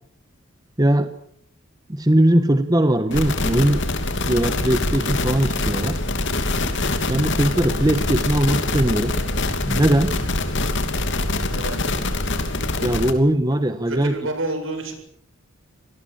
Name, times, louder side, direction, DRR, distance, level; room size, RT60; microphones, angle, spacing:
voice 1, 0.8-1.1 1.9-6.0 6.7-6.8 7.1-9.1 9.7-10.1 12.8-14.1, right 1 dB, 20° right, 9 dB, 1.2 m, -20 dB
sound 1, 3.1-13.1, left 2 dB, 60° left, 3.0 m, -24 dB
voice 2, 11.5-11.8 13.9-14.9, right 2 dB, 65° right, 6 dB, 7.7 m, -29 dB
27.5 x 19.5 x 8.7 m, 0.71 s
head